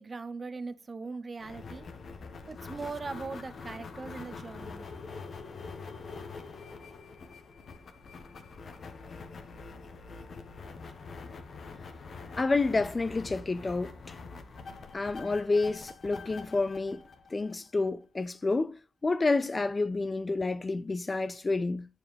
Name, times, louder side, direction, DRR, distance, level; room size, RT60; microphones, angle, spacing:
voice 1, 0.0-1.9 2.5-4.9, right 4 dB, 30° right, 0.9 m, -40 dB
sound 1, 1.4-17.9, left 4 dB, 45° left, 1.4 m, -45 dB
voice 2, 12.4-14.1 14.9-17.0 17.3-21.9, left 3 dB, 25° left, 0.4 m, -29 dB
9.6 x 6.9 x 3.4 m
cardioid pair, 85°, 0 cm